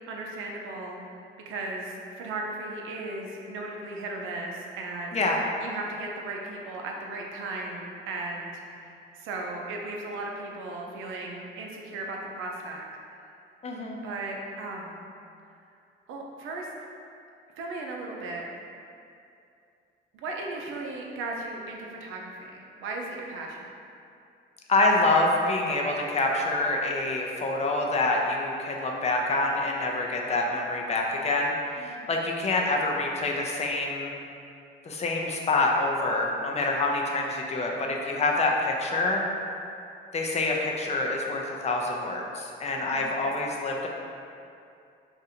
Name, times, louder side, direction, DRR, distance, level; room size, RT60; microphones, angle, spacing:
voice 1, 0.1-1.0 1.5-5.2 5.6-12.8 14.0-15.0 16.1-16.7 17.6-18.5 20.2-23.7 31.8-32.1 42.9-43.1, right 2 dB, 90° right, 0 dB, 0.5 m, -36 dB
voice 2, 13.6-14.0 24.7-34.1 34.8-39.2 40.1-43.9, left 2 dB, 35° left, 0 dB, 0.5 m, -26 dB
2.6 x 2.5 x 4.2 m, 2.5 s
cardioid pair, 90°, 20 cm